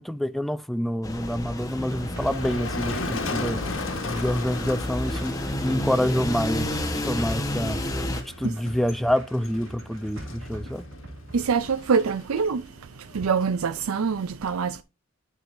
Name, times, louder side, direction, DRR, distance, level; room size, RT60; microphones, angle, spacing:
voice 1, 0.0-3.6 4.1-6.7 7.0-7.8 8.4-10.9, equal, ahead, 0.4 m, -27 dB
sound 1, 1.0-8.2, left 1 dB, 15° left, 1.1 m, -31 dB
Motor vehicle (road), 1.6-14.2, left 3 dB, 65° left, 1.4 m, -37 dB
sound 2, 1.7-11.9, right 1 dB, 70° right, 2.2 m, -42 dB
voice 2, 11.3-12.7 13.1-14.8, right 5 dB, 90° right, 0.5 m, -24 dB
9.6 x 6.1 x 2.6 m
head